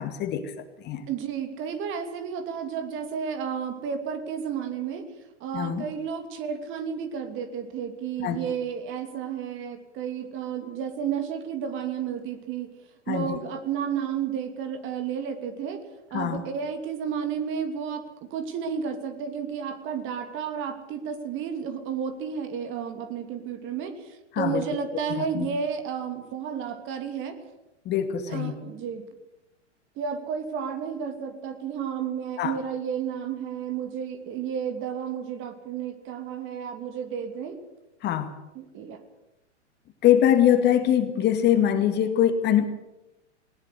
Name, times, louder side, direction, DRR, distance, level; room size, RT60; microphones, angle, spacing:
voice 1, 0.0-1.0 5.5-5.8 8.2-8.4 13.1-13.4 16.1-16.4 24.3-24.6 25.1-25.5 27.9-28.6 32.4-32.6 38.0-38.3 40.0-42.7, left 10 dB, 30° left, 8 dB, 2.1 m, -23 dB
voice 2, 1.1-5.0 5.4-12.7 13.1-15.8 16.1-18.1 18.3-23.9 24.4-27.4 28.3-29.0 30.0-37.6 38.6-39.0, right 7 dB, 35° right, 8 dB, 2.9 m, -32 dB
19.5 x 19.0 x 8.2 m, 0.95 s
figure-of-eight pair, 105°, 35 cm